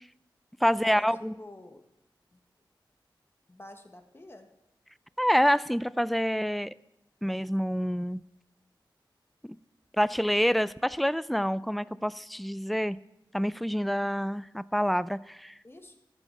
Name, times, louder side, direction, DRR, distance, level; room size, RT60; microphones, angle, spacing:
voice 1, 0.6-1.3 5.2-6.7 7.2-8.2 9.4-9.6 9.9-13.0 13.3-15.5, equal, ahead, 18 dB, 0.3 m, -27 dB
voice 2, 1.4-1.8 2.3-2.4 3.5-4.5 15.6-16.0, left 1 dB, 30° left, 6 dB, 1.4 m, -48 dB
14.0 x 7.2 x 5.8 m, 0.87 s
wide cardioid pair, 80°, 8 cm